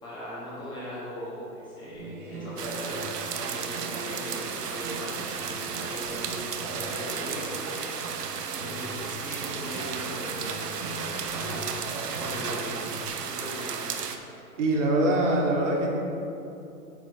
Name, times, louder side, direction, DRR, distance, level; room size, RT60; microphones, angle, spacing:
voice 1, 0.0-3.0 3.3-5.2 5.8-7.8 8.6-9.0 9.2-10.7 11.3-11.8 12.1-12.8 13.3-13.9, left 1 dB, 10° left, -8 dB, 1.2 m, -39 dB
sound 1, 1.9-13.1, right 1 dB, 35° right, 1.0 m, -40 dB
sound 2, 2.6-14.2, right 6 dB, 80° right, 0.9 m, -34 dB
voice 2, 14.6-15.9, right 1 dB, 50° right, -1 dB, 1.5 m, -23 dB
8.8 x 4.1 x 6.6 m, 2.9 s
hypercardioid pair, 155°, 47 cm